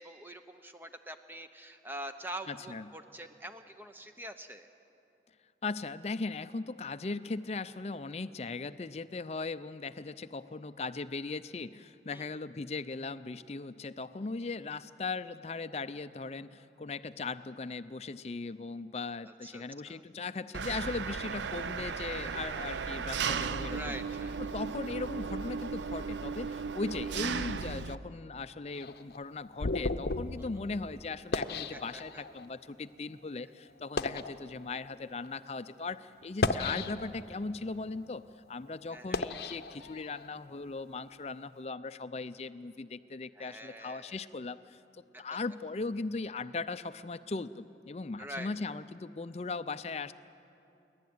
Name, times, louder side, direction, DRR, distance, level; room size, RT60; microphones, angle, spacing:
voice 1, 0.0-4.7 12.1-12.3 19.2-20.0 23.7-24.4 30.4-30.5 31.7-32.2 38.9-39.2 43.4-44.2 45.1-45.4 48.2-48.8, right 1 dB, 10° right, 8 dB, 0.8 m, -45 dB
voice 2, 2.5-2.9 5.6-23.8 24.4-50.2, left 3 dB, 35° left, 13 dB, 0.4 m, -38 dB
Engine, 20.5-28.0, right 5 dB, 90° right, 0.5 m, -36 dB
sound 1, 28.7-32.5 33.1-33.3 33.8-34.3 35.1-35.3 36.2-37.3 37.8-40.3, left 3 dB, 65° left, 0.7 m, -35 dB
29.5 x 11.5 x 9.4 m, 2.8 s
head